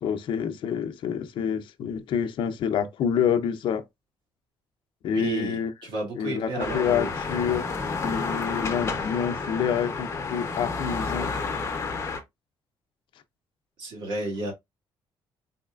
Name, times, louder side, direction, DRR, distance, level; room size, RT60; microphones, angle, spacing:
voice 1, 0.0-3.8 5.0-5.7 6.2-7.6 8.0-11.3, left 8 dB, 70° left, 0.6 m, -27 dB
voice 2, 5.1-7.1 8.0-8.2 13.8-14.5, right 2 dB, 70° right, 1.9 m, -32 dB
sound 1, 6.6-12.2, left 4 dB, 30° left, 0.8 m, -30 dB
4.2 x 3.1 x 2.4 m
cardioid pair, 140°, 9 cm